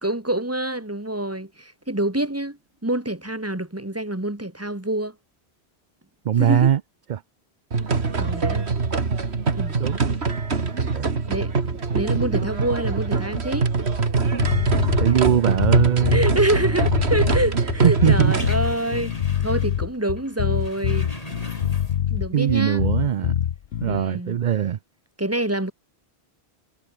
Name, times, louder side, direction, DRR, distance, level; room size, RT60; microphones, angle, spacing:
voice 1, 0.0-2.6 2.8-5.2 6.4-6.7 8.2-8.7 9.5-9.8 11.3-13.7 15.1-15.2 16.1-21.1 22.1-22.8 23.8-24.4 25.2-25.7, right 1 dB, 15° right, 2.1 m, -26 dB
voice 2, 6.2-6.8 7.1-7.2 9.8-10.0 10.8-11.1 15.0-16.3 17.8-18.3 22.3-23.3 23.8-24.8, right 9 dB, 55° right, 0.6 m, -21 dB
sound 1, 7.7-18.6, right 4 dB, 80° right, 2.3 m, -23 dB
sound 2, 14.4-24.0, left 10 dB, 75° left, 1.0 m, -24 dB
sound 3, 18.0-19.9 20.2-22.2 22.5-22.6, left 1 dB, 35° left, 6.7 m, -39 dB
omnidirectional pair, 1.1 m